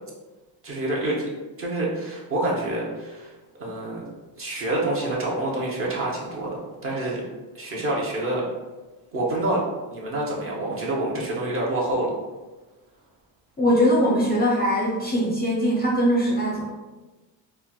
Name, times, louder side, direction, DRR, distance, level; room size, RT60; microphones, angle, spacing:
voice 1, 0.6-1.3 1.6-3.3 3.6-4.0 4.4-7.2 7.5-8.5 9.1-9.7 9.9-12.1, right 1 dB, 30° right, -4 dB, 0.7 m, -27 dB
voice 2, 13.6-16.7, equal, 20° left, -4 dB, 0.5 m, -21 dB
4.4 x 2.0 x 2.3 m, 1.2 s
cardioid pair, 130°, 45 cm